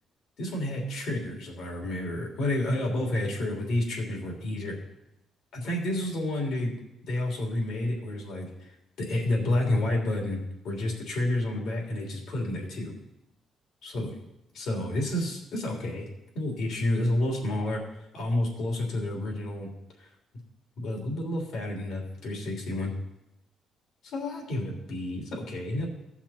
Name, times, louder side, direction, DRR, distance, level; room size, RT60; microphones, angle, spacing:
voice 1, 0.4-4.8 5.5-6.7 7.1-8.7 9.0-12.9 13.8-14.2 14.5-16.0 16.3-17.8 18.1-19.7 20.0-20.1 20.8-22.9 24.0-25.9, left 1 dB, 80° left, -1 dB, 3.2 m, -30 dB
16.0 x 5.9 x 4.3 m, 0.89 s
cardioid pair, 90°, 0 cm